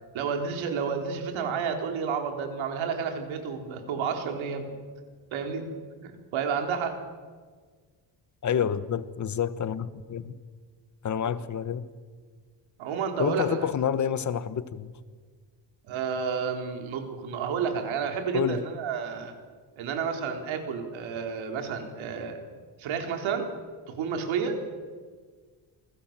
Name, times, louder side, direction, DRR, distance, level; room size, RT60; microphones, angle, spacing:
voice 1, 0.1-4.7 5.3-5.6 6.0-7.0 12.8-13.7 15.9-19.3 19.8-22.4 22.8-23.5 23.9-24.9, right 6 dB, 85° right, 4.4 m, -30 dB
voice 2, 8.4-10.4 11.0-11.9 13.2-14.9 18.3-18.6, left 8 dB, 40° left, 1.2 m, -28 dB
27.5 x 20.5 x 7.6 m
cardioid pair, 140°, 46 cm